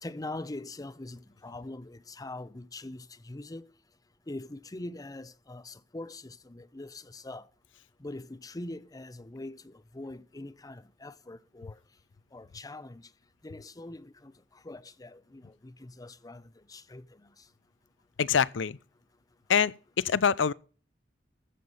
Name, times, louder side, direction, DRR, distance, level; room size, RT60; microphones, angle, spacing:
voice 1, 0.0-3.7 4.3-7.5 8.0-11.8 12.3-13.1 13.4-14.3 14.6-17.3, left 2 dB, 20° left, 0.6 m, -43 dB
voice 2, 18.2-18.8 19.5-20.5, left 7 dB, 75° left, 0.5 m, -25 dB
14.0 x 6.9 x 5.5 m
head